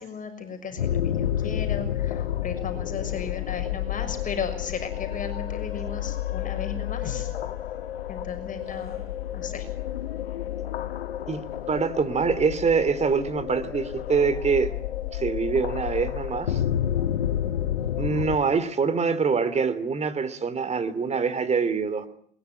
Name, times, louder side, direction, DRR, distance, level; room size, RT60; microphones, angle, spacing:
voice 1, 0.0-7.3 8.1-9.0 9.3-9.7, left 6 dB, 25° left, 6.3 m, -35 dB
sound 1, 0.8-18.4, left 11 dB, 80° left, 1.6 m, -30 dB
voice 2, 11.7-14.7 15.1-16.6 18.0-22.1, right 5 dB, 20° right, 2.9 m, -24 dB
22.0 x 21.5 x 9.7 m
hypercardioid pair, 85°, 29 cm